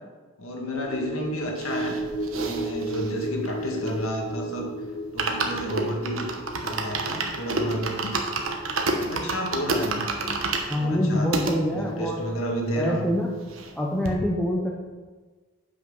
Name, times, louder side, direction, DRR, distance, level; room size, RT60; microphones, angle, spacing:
voice 1, 0.4-2.0 2.3-4.7 5.1-6.3 6.6-8.1 9.0-10.1 10.8-11.5 11.7-13.0, equal, 90° left, 0 dB, 1.8 m, -31 dB
sound 1, 0.8-11.4 11.7-11.9, right 1 dB, 40° left, 0.8 m, -35 dB
sound 2, 1.5-4.3 4.7-4.8 5.0-11.5 12.1-12.2 12.4-12.5 12.8-13.8 14.0-14.2, right 3 dB, 75° right, 1.1 m, -30 dB
voice 2, 10.7-12.3 12.7-13.3 13.8-14.7, equal, 5° left, -2 dB, 0.8 m, -25 dB
7.8 x 5.9 x 5.5 m, 1.4 s
head